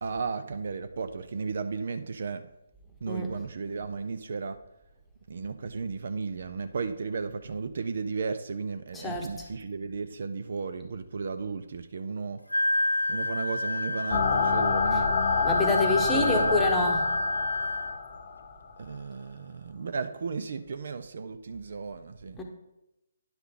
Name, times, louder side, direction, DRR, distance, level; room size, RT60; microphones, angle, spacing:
voice 1, 0.0-2.5 3.0-4.6 5.3-12.4 13.1-15.1 16.1-16.6 18.8-22.4, right 4 dB, 50° right, 10 dB, 0.5 m, -34 dB
voice 2, 8.9-9.3 15.4-17.1 22.4-22.5, left 2 dB, 10° left, 2 dB, 1.0 m, -27 dB
Wind instrument woodwind instrument, 12.5-18.0, left 2 dB, 85° left, 0.8 m, -29 dB
sound 1, 14.1-18.7, left 6 dB, 45° left, 0.8 m, -28 dB
10.5 x 5.6 x 3.7 m, 0.91 s
figure-of-eight pair, 140°, 0 cm